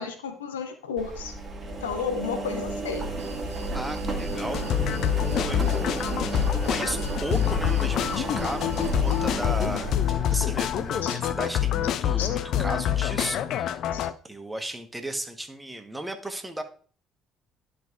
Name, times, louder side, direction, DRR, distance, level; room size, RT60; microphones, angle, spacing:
voice 1, 0.0-1.3 1.8-3.1 11.0-11.2 12.2-12.3 13.9-14.1, left 6 dB, 80° left, 7 dB, 0.8 m, -32 dB
Engine, 1.0-11.0, right 2 dB, 35° right, 1.7 m, -32 dB
sound 1, 3.2-9.3, right 4 dB, 85° right, 0.4 m, -44 dB
voice 2, 3.7-5.0 5.3-6.1 6.5-9.9 10.3-13.8 14.2-16.6, right 1 dB, 10° right, 6 dB, 1.2 m, -35 dB
sound 2, 4.3-14.1, left 11 dB, 55° left, 0.4 m, -26 dB
12.0 x 5.2 x 2.5 m, 0.43 s
figure-of-eight pair, 50°, 0 cm